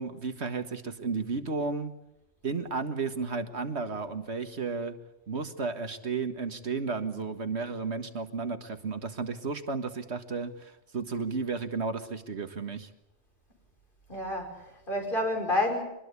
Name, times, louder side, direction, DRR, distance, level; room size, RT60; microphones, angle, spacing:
voice 1, 0.0-1.9 2.4-5.0 5.3-12.9, right 4 dB, 70° right, 9 dB, 1.9 m, -33 dB
voice 2, 14.1-15.8, left 1 dB, 50° left, 2 dB, 6.0 m, -29 dB
24.0 x 21.5 x 8.3 m, 0.89 s
omnidirectional pair, 1.2 m